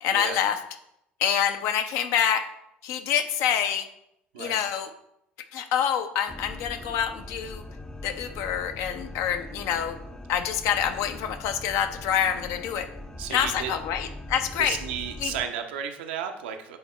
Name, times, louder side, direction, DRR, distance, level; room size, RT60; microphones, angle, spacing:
voice 1, 0.0-0.6 1.2-2.5 2.8-3.9 4.4-4.9 5.5-7.6 8.0-10.0 10.3-12.9 13.3-14.8 15.2-15.3, left 9 dB, 55° left, 8 dB, 0.6 m, -26 dB
sound 1, 6.3-15.5, left 1 dB, 10° left, 0.5 m, -41 dB
voice 2, 13.2-13.7 14.6-16.8, right 8 dB, 70° right, 5 dB, 0.7 m, -33 dB
7.9 x 3.5 x 4.2 m, 0.79 s
figure-of-eight pair, 60°, 6 cm